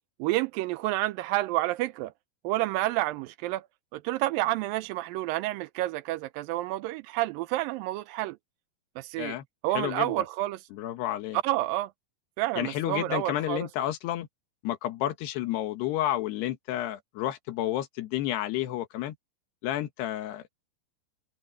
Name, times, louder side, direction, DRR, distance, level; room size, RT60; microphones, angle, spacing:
voice 1, 0.2-2.1 2.4-3.7 3.9-8.4 9.0-9.3 9.6-10.6 11.4-11.9 12.4-13.7, right 16 dB, 85° right, 2.1 m, -29 dB
voice 2, 9.7-10.2 10.7-11.4 12.6-14.3 14.6-19.2 19.6-20.5, left 13 dB, 90° left, 3.5 m, -31 dB
omnidirectional pair, 4.6 m